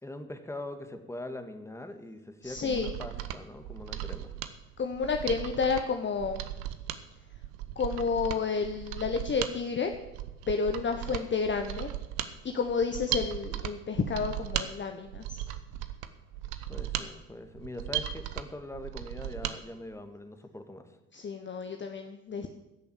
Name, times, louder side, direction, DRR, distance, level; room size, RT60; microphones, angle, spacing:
voice 1, 0.0-4.3 11.0-11.2 16.7-21.0, left 1 dB, 5° left, 7 dB, 1.7 m, -42 dB
voice 2, 2.4-2.9 4.8-6.4 7.8-9.9 10.5-11.9 12.4-15.4 21.1-22.5, left 5 dB, 25° left, 6 dB, 1.0 m, -30 dB
Mechanisms, 2.5-19.6 19.9-20.0, right 12 dB, 65° right, 1.0 m, -37 dB
15.5 x 6.8 x 7.4 m, 0.98 s
figure-of-eight pair, 55°, 43 cm